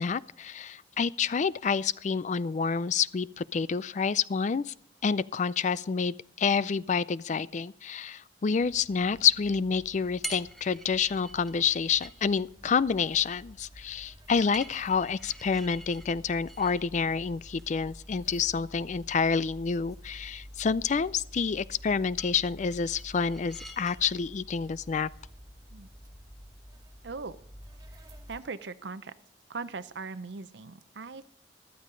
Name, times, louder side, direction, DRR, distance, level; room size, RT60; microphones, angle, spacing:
voice 1, 0.0-4.7 5.0-25.1, left 6 dB, 40° left, 0.4 m, -28 dB
sound 1, 8.6-28.4, equal, 20° right, 2.2 m, -50 dB
sound 2, 9.9-27.4, right 1 dB, ahead, 1.1 m, -49 dB
voice 2, 27.0-27.4 27.9-28.0 28.3-29.1 29.5-31.3, right 4 dB, 70° right, 0.6 m, -39 dB
14.5 x 12.5 x 3.8 m
head